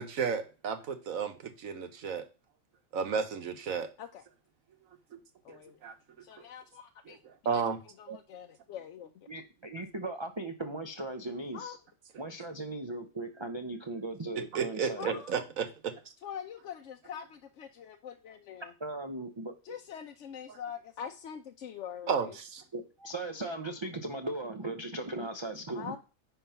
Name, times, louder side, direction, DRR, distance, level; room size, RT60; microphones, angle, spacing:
voice 1, 0.0-2.2 2.9-3.9 5.1-5.2 5.5-6.2 7.1-7.8 9.8-9.9 14.5-15.9 22.1-22.6, right 6 dB, 75° right, 1.4 m, -33 dB
voice 2, 5.4-5.8 6.2-7.6 8.0-9.3 11.5-11.8 15.0-15.4 16.2-18.7 19.6-22.4 25.7-26.0, left 8 dB, 65° left, 0.9 m, -44 dB
voice 3, 9.3-11.8 12.2-15.2 18.8-19.5 22.7-25.9, right 2 dB, 30° right, 0.6 m, -38 dB
10.0 x 3.8 x 5.7 m
omnidirectional pair, 1.4 m